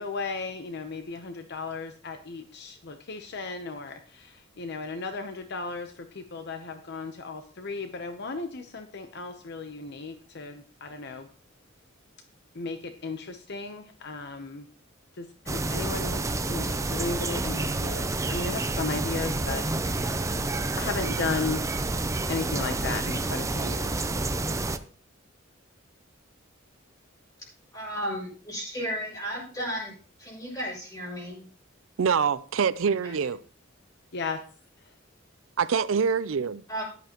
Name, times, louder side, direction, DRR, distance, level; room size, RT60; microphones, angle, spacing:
voice 1, 0.0-11.3 12.5-14.7 15.1-16.2 16.5-20.3 20.8-21.6 22.3-24.1 34.1-34.4, left 4 dB, 55° left, 0.8 m, -35 dB
sound 1, 15.5-24.8, right 2 dB, 15° right, 0.6 m, -29 dB
voice 2, 27.7-29.9 30.2-31.4 33.0-33.3 36.7-36.8, equal, 20° left, 6.5 m, -34 dB
voice 3, 32.0-33.4 35.6-36.6, right 6 dB, 75° right, 0.5 m, -25 dB
14.0 x 11.0 x 3.0 m
head